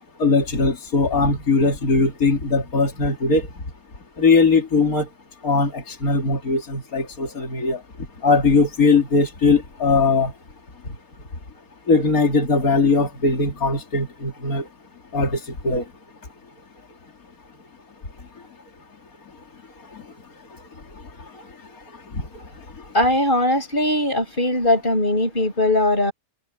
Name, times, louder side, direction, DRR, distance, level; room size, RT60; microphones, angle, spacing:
voice 1, 0.2-3.5 4.2-5.1 5.4-7.8 8.2-10.3 11.9-14.6 15.1-15.8, left 4 dB, 75° left, 3.0 m, -19 dB
voice 2, 22.9-26.1, left 1 dB, 35° left, 8.4 m, -20 dB
omnidirectional pair, 1.5 m